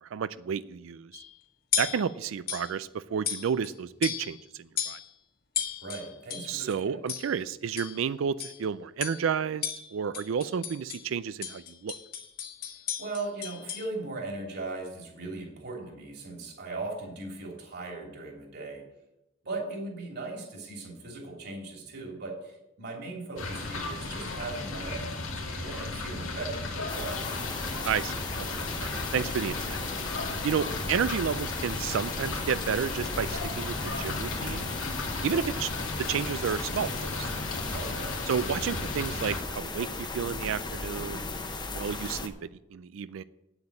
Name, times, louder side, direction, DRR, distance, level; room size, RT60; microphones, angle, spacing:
voice 1, 0.0-1.2 1.8-5.0 6.5-11.9 27.8-28.5 28.8-29.8 30.4-34.7 35.2-35.7 36.1-37.3 38.3-41.2 41.7-43.2, right 7 dB, 75° right, 16 dB, 0.4 m, -31 dB
sound 1, 1.1-1.3 1.7-2.1 2.5-2.7 3.3-3.7 4.0-4.4 4.8-5.1 5.6-6.6 7.1-7.4 7.8-8.0 8.4-8.6 9.0-9.3 9.6-11.1 11.4-13.9, left 8 dB, 50° left, 1.5 m, -35 dB
voice 2, 5.8-7.0 13.0-18.8 19.4-27.2 37.7-38.1, right 3 dB, 55° right, 1 dB, 2.9 m, -38 dB
sound 2, 23.4-39.4, left 3 dB, 85° left, 2.4 m, -35 dB
sound 3, 26.9-42.3, left 3 dB, 20° left, 0.9 m, -36 dB
8.9 x 8.0 x 8.6 m, 0.91 s
head